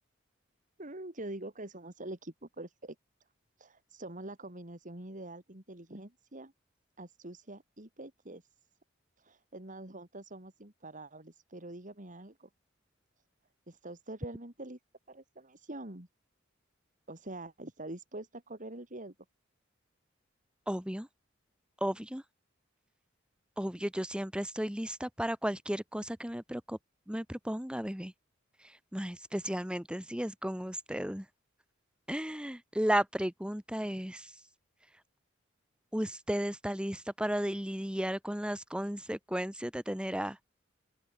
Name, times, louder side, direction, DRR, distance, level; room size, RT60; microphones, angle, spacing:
voice 1, 0.8-3.0 3.6-6.5 7.0-8.4 9.2-12.5 13.7-14.8 15.1-16.1 17.1-19.1, right 1 dB, 40° right, 3.8 m, -45 dB
voice 2, 20.7-21.1 21.8-22.2 23.6-26.8 27.1-28.1 28.6-31.3 32.1-34.3 35.9-40.4, equal, 5° right, 2.4 m, -34 dB
open air
head